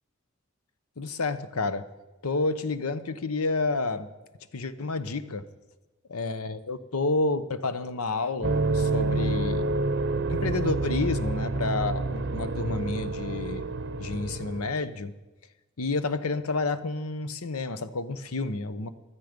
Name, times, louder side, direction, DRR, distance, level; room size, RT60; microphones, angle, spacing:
voice 1, 1.0-1.8 2.2-4.1 4.5-5.4 6.1-9.7 10.3-13.7 14.0-15.1 15.8-18.9, left 3 dB, 85° left, 13 dB, 0.9 m, -30 dB
sound 1, 8.4-14.7, right 3 dB, 50° right, 0.6 m, -28 dB
15.5 x 13.0 x 5.2 m, 1.1 s
head